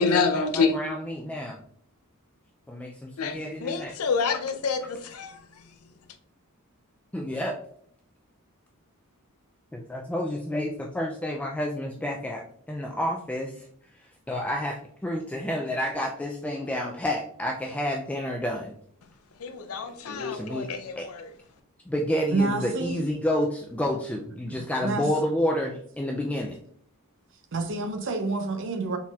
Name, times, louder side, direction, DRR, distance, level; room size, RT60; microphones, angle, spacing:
voice 1, 0.0-0.8 3.2-5.8 19.4-21.3, left 5 dB, 75° left, 0.6 m, -28 dB
voice 2, 0.7-1.6 2.7-3.9 7.1-7.6 9.7-13.5 14.3-18.7 20.3-20.7 21.0-21.1 21.9-26.6, left 1 dB, 5° left, 0.3 m, -29 dB
voice 3, 22.3-23.0 24.5-25.1 27.5-29.0, right 3 dB, 60° right, 0.7 m, -28 dB
4.1 x 4.0 x 2.3 m
head